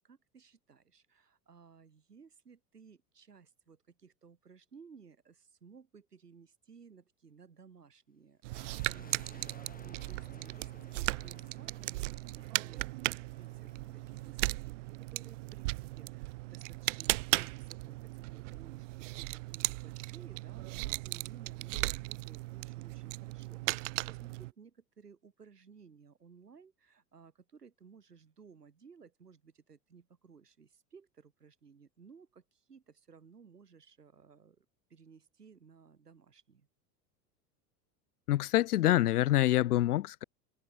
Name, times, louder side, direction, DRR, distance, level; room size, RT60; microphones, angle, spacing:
voice 1, 0.0-36.7, right 6 dB, 85° right, 5.9 m, -58 dB
sound 1, 8.4-24.5, right 22 dB, 55° right, 0.5 m, -37 dB
sound 2, 8.5-16.0 16.8-18.6 18.9-19.0 19.2-19.5 19.9-20.0, left 5 dB, 20° left, 5.1 m, -60 dB
voice 2, 38.3-40.2, left 14 dB, 75° left, 0.6 m, -26 dB
figure-of-eight pair, 80°, 46 cm